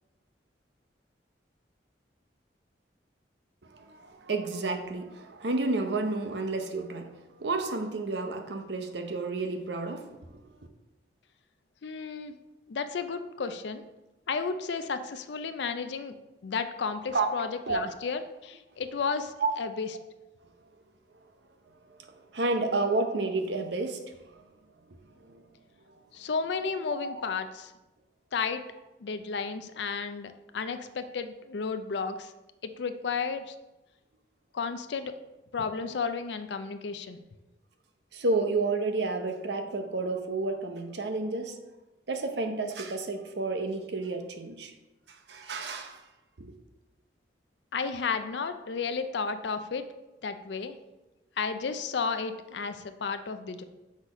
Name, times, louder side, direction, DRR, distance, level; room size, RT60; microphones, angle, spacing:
voice 1, 3.6-10.6 17.1-17.3 17.7-17.8 19.4-19.5 21.8-24.5 24.9-25.5 25.9-26.0 38.1-41.6 42.1-44.7 45.1-46.0 46.4-46.5, right 3 dB, 70° right, 0.7 m, -31 dB
voice 2, 11.8-12.3 12.7-13.8 14.3-16.1 16.4-19.9 26.1-27.7 28.3-28.6 29.0-32.3 32.6-33.6 34.5-35.2 35.5-37.2 47.7-49.9 50.2-50.8 51.4-53.6, left 5 dB, 75° left, 0.5 m, -33 dB
6.3 x 4.2 x 4.9 m
head